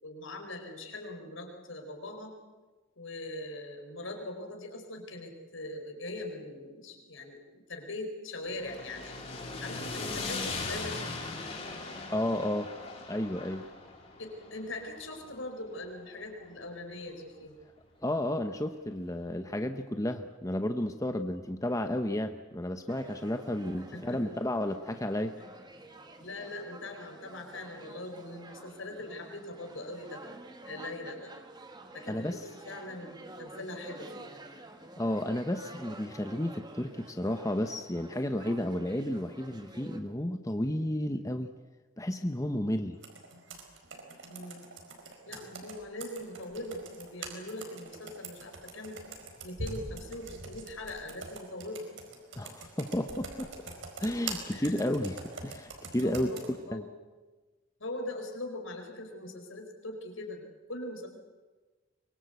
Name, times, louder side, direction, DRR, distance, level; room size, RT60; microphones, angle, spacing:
voice 1, 0.0-2.4 3.0-9.2 9.6-11.0 14.2-17.5 23.9-24.2 25.4-25.5 26.2-30.2 30.6-31.3 31.9-34.3 44.3-44.6 45.3-49.0 49.4-51.9 54.5-54.7 56.0-56.9 57.8-61.1, left 1 dB, 75° left, 3 dB, 4.7 m, -41 dB
sound 1, 8.4-16.7, left 3 dB, 30° left, 4.3 m, -40 dB
voice 2, 12.1-12.7 13.1-13.7 18.0-25.4 32.1-32.4 35.0-41.5 42.0-43.0 52.4-53.5 54.0-56.3 56.7-56.8, left 1 dB, 15° left, 7 dB, 0.8 m, -32 dB
sound 2, 22.9-40.0, right 1 dB, 20° right, 1.6 m, -49 dB
Computer keyboard, 43.0-56.5, right 3 dB, 65° right, 4.6 m, -44 dB
24.0 x 22.5 x 8.2 m, 1.3 s
head